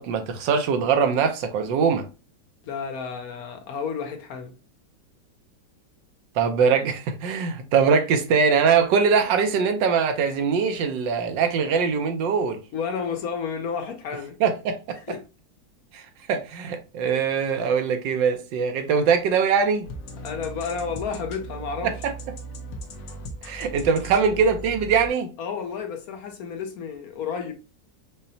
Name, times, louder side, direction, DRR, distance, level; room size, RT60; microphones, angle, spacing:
voice 1, 0.0-2.0 6.4-12.6 14.4-14.8 15.9-16.0 16.3-19.9 22.0-22.1 23.4-25.3, right 6 dB, 80° right, 1.3 m, -22 dB
voice 2, 2.6-4.5 12.7-14.4 15.1-15.2 20.2-21.9 25.4-27.5, left 6 dB, 65° left, 1.0 m, -31 dB
sound 1, 19.8-25.1, right 1 dB, 90° left, 1.5 m, -38 dB
5.5 x 2.1 x 2.6 m
omnidirectional pair, 2.0 m